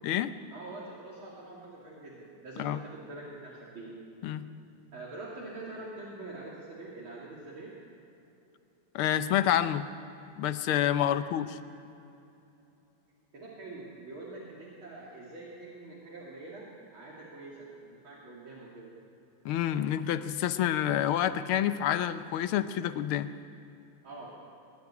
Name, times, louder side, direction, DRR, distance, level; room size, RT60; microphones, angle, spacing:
voice 1, 0.5-3.9 4.9-7.7 11.0-11.2 13.3-17.7 18.0-18.9 24.0-24.3, right 2 dB, 70° right, -6 dB, 3.7 m, -45 dB
voice 2, 8.9-9.9 10.4-11.6 19.4-23.3, left 11 dB, 80° left, 12 dB, 1.7 m, -28 dB
23.0 x 12.0 x 9.8 m, 2.8 s
omnidirectional pair, 2.4 m